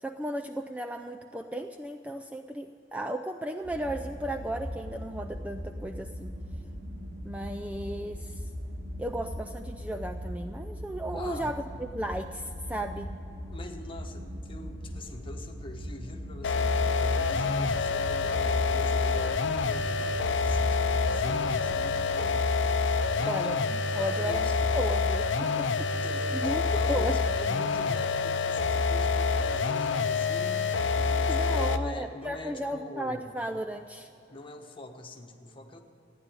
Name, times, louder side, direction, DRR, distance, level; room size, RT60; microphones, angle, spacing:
voice 1, 0.0-6.3 7.2-8.5 9.0-13.1 23.3-25.9 26.3-27.2 31.2-34.1, right 1 dB, 5° right, 4 dB, 0.4 m, -35 dB
sound 1, 3.6-22.0, equal, 55° right, 3.4 m, -40 dB
voice 2, 11.1-11.5 13.5-22.9 23.2-24.5 25.9-33.3 34.3-35.8, left 1 dB, 25° left, 3 dB, 1.3 m, -44 dB
sound 2, 16.4-31.9, left 4 dB, 70° left, 0.7 m, -27 dB
15.0 x 10.0 x 8.7 m, 3.0 s
head